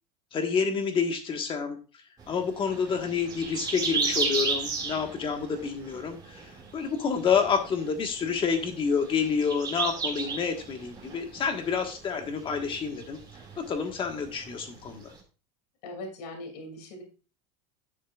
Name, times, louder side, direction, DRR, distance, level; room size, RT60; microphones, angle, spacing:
voice 1, 0.3-1.8 2.3-13.2 13.6-15.1, left 6 dB, 25° left, 5 dB, 1.4 m, -28 dB
sound 1, 2.2-15.2, right 4 dB, 20° right, 2.2 m, -35 dB
voice 2, 15.8-17.0, left 1 dB, 75° left, 3 dB, 2.7 m, -40 dB
10.5 x 6.3 x 2.4 m, 0.35 s
supercardioid pair, 145°, 21 cm